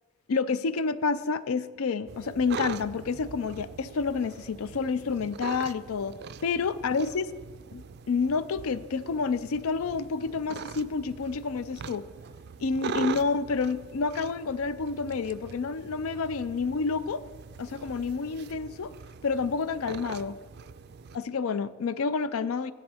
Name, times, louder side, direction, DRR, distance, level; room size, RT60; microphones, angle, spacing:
voice 1, 0.3-6.2 6.4-7.3 7.7-12.1 12.6-17.2 17.6-18.9 19.2-20.4 21.1-22.7, left 4 dB, 85° left, 15 dB, 0.4 m, -29 dB
sound 1, 2.1-21.2, right 6 dB, 50° right, 0.3 m, -42 dB
14.0 x 11.0 x 3.5 m, 1.4 s
head